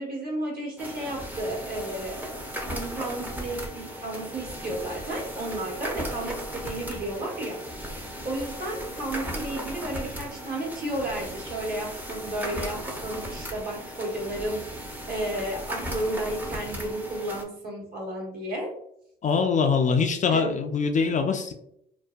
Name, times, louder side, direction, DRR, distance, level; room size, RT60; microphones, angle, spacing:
voice 1, 0.0-7.6 8.2-18.7 20.3-20.5, right 1 dB, 45° right, -2 dB, 1.2 m, -33 dB
sound 1, 0.8-17.4, equal, 10° right, 0.6 m, -37 dB
voice 2, 19.2-21.5, left 5 dB, 35° left, 5 dB, 0.4 m, -23 dB
2.5 x 2.1 x 2.3 m, 0.74 s
hypercardioid pair, 60°, 21 cm